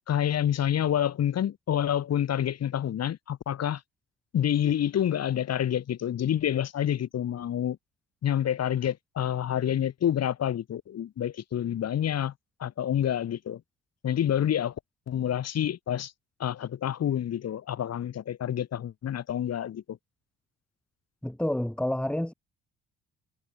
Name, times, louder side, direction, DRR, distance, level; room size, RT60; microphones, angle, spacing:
voice 1, 0.1-3.8 4.3-7.8 8.2-12.3 12.6-13.6 14.0-14.7 15.1-16.1 16.4-20.0, left 10 dB, 50° left, 3.0 m, -28 dB
voice 2, 21.2-22.3, left 1 dB, 5° left, 2.4 m, -29 dB
figure-of-eight pair, 45°, 32 cm